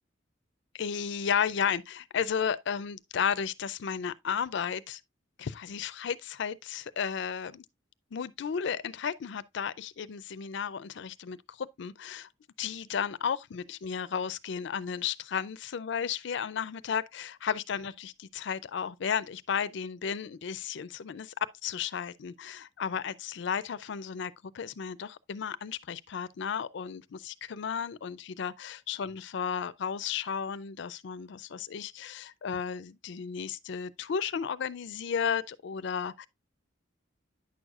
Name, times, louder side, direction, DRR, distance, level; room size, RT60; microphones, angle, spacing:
voice 1, 0.7-5.0 5.4-7.6 8.1-12.3 12.6-21.3 21.6-36.3, left 7 dB, 65° left, 0.4 m, -33 dB
9.3 x 6.4 x 2.3 m
head